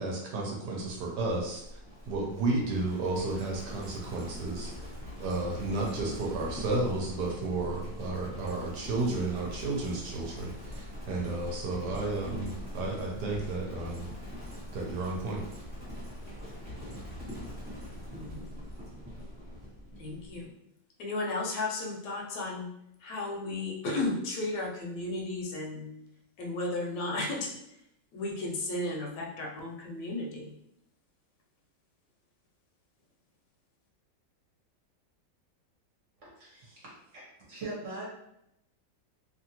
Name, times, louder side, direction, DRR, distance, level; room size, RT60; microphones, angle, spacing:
voice 1, 0.0-1.6 2.1-4.7 5.2-14.1 14.7-15.4, right 2 dB, 70° right, -1 dB, 1.1 m, -32 dB
Livestock farm animals working animals, 0.8-20.5, equal, 15° right, 0.9 m, -43 dB
voice 2, 18.1-18.6 20.0-20.6 21.0-22.7 23.0-26.1 26.4-27.6 28.1-30.6, left 2 dB, 75° left, 0 dB, 1.2 m, -34 dB
voice 3, 36.2-36.7 37.1-37.2 37.5-38.0, right 2 dB, 50° right, -6 dB, 1.0 m, -40 dB
2.8 x 2.6 x 2.8 m, 0.79 s
omnidirectional pair, 1.9 m